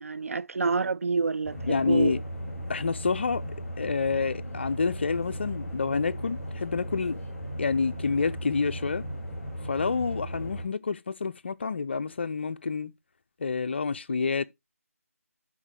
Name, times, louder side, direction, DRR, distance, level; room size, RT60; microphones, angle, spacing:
voice 1, 0.0-2.2, right 4 dB, 65° right, 0.3 m, -28 dB
sound 1, 1.4-10.7, equal, 5° left, 6.3 m, -37 dB
voice 2, 1.7-2.2 2.7-3.4 3.8-7.2 7.6-9.0 9.7-12.9 13.4-14.4, left 4 dB, 45° left, 0.5 m, -28 dB
12.0 x 4.4 x 3.3 m
figure-of-eight pair, 160°, 8 cm